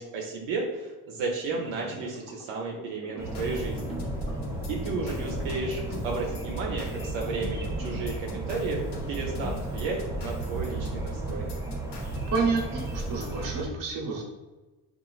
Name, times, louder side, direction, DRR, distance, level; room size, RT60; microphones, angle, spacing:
voice 1, 0.0-4.0 4.7-8.8 9.1-11.5, right 3 dB, 75° right, -1 dB, 0.6 m, -33 dB
sound 1, 1.5-10.0, left 1 dB, 10° left, 0.9 m, -43 dB
sound 2, 3.2-13.7, right 2 dB, 5° right, 0.5 m, -34 dB
sound 3, 3.3-13.4, left 2 dB, 55° left, 0.7 m, -42 dB
voice 2, 12.3-14.2, right 4 dB, 40° right, -2 dB, 0.9 m, -29 dB
2.8 x 2.4 x 2.3 m, 1.2 s
supercardioid pair, 85°, 49 cm